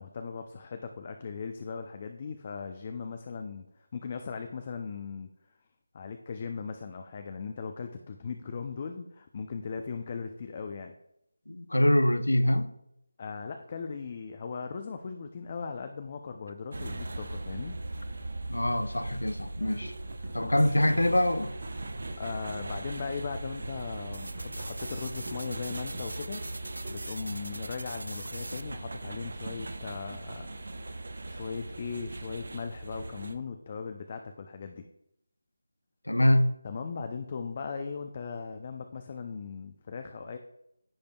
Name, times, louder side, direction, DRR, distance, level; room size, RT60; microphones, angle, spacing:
voice 1, 0.0-3.7 3.9-5.3 5.9-10.9 13.2-17.7 20.2-20.7 22.2-26.6 26.9-30.5 30.8-31.0 31.3-34.9 36.6-40.4, left 5 dB, 30° left, 0.6 m, -38 dB
voice 2, 11.5-12.7 18.5-19.9 20.3-21.5 36.1-36.5, left 1 dB, 85° left, 0.7 m, -24 dB
sound 1, 16.7-33.3, right 2 dB, 60° right, 0.8 m, -39 dB
sound 2, 19.6-27.1, right 2 dB, 35° right, 1.8 m, -47 dB
sound 3, 24.1-28.6, right 2 dB, 75° right, 0.4 m, -42 dB
15.0 x 5.1 x 2.3 m
figure-of-eight pair, 165°, 0 cm